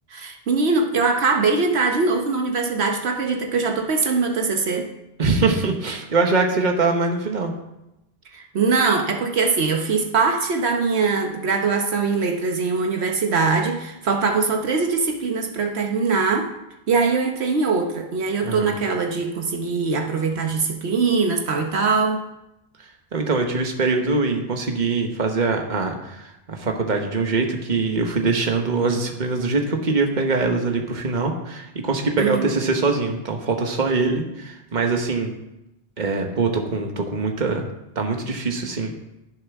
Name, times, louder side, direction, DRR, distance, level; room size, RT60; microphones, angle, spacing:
voice 1, 0.1-4.9 8.3-16.5 16.9-22.2 32.2-32.5, right 4 dB, 75° right, 3 dB, 1.2 m, -22 dB
voice 2, 5.2-7.5 18.4-18.7 23.1-35.3 36.0-37.7 37.9-39.0, right 3 dB, 45° right, 3 dB, 1.3 m, -23 dB
16.5 x 6.8 x 3.6 m, 0.92 s
omnidirectional pair, 1.1 m